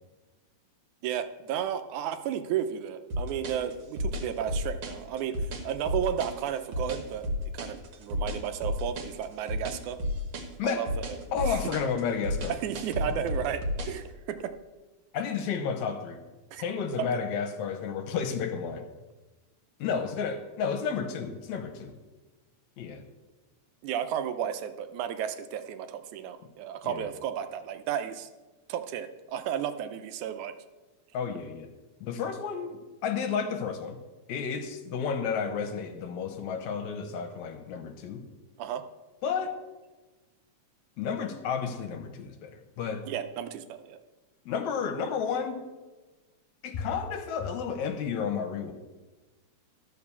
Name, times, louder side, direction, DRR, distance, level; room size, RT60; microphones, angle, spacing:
voice 1, 1.0-7.3 7.5-10.0 10.6-11.2 11.5-11.6 12.5-14.5 16.5-16.6 17.0-17.1 23.8-28.3 28.7-30.5 38.6-38.8 43.1-44.0, right 9 dB, 85° right, 9 dB, 2.1 m, -33 dB
sound 1, 3.1-14.0, left 1 dB, 60° right, 2.3 m, -32 dB
voice 2, 11.3-12.5 15.1-16.2 16.6-18.8 19.8-22.0 22.8-23.0 26.8-27.1 31.1-31.7 32.0-34.0 34.3-38.2 39.2-39.6 41.0-43.1 44.5-45.6 46.6-48.7, left 6 dB, 80° left, 6 dB, 2.3 m, -31 dB
12.5 x 5.1 x 7.0 m, 1.2 s
omnidirectional pair, 3.3 m